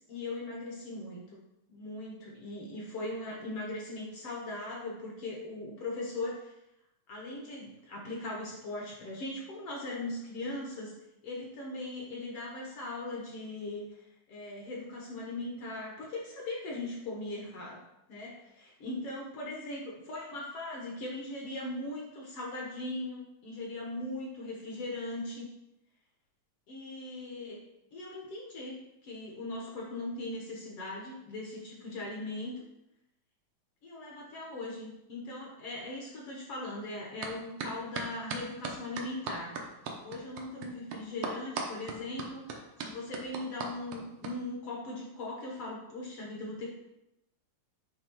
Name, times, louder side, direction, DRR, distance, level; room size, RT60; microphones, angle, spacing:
voice 1, 0.0-1.4 1.7-6.5 7.1-11.0 11.2-13.8 14.3-17.8 18.1-18.3 18.6-25.5 26.7-27.6 27.9-32.7 33.8-39.6 40.0-46.7, left 2 dB, 60° left, -2 dB, 1.6 m, -39 dB
sound 1, 37.2-37.3 37.6-44.3, right 4 dB, 75° right, 1.4 m, -37 dB
9.2 x 3.5 x 4.5 m, 0.89 s
omnidirectional pair, 3.7 m